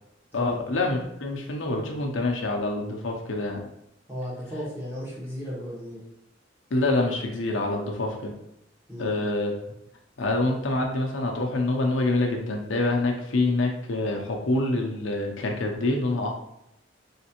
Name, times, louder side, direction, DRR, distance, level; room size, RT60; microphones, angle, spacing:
voice 1, 0.3-3.6 6.7-8.3 9.0-9.6 10.2-16.3, left 2 dB, 85° left, 1 dB, 0.6 m, -26 dB
voice 2, 4.1-6.0 8.9-9.1, equal, 15° right, -7 dB, 1.4 m, -35 dB
3.5 x 3.2 x 2.9 m, 0.80 s
head